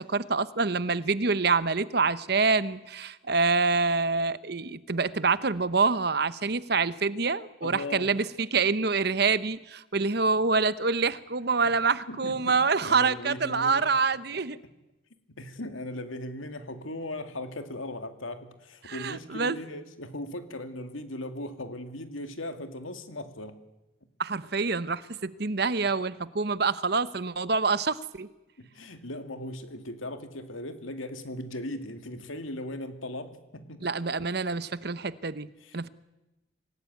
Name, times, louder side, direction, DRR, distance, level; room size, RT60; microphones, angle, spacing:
voice 1, 0.0-14.6 18.8-19.6 24.2-28.3 33.8-35.5 35.7-35.9, right 4 dB, 50° right, 15 dB, 0.9 m, -26 dB
voice 2, 7.6-8.3 11.6-11.7 12.1-12.6 12.9-13.8 14.3-14.4 15.3-23.6 25.8-25.9 28.6-33.9 35.6-35.9, left 1 dB, 85° left, 8 dB, 2.4 m, -38 dB
26.0 x 18.0 x 9.4 m, 0.99 s
head